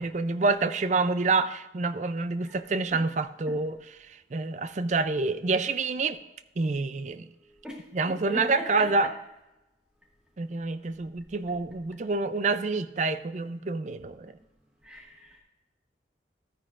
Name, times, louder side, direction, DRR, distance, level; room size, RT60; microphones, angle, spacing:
voice 1, 0.0-3.8 4.3-6.2 6.6-7.3 7.9-9.1 10.4-14.3, right 3 dB, 40° right, 12 dB, 0.4 m, -27 dB
voice 2, 8.3-8.9 14.8-15.4, equal, 5° right, -1 dB, 0.9 m, -38 dB
13.5 x 9.9 x 2.5 m, 1.0 s
head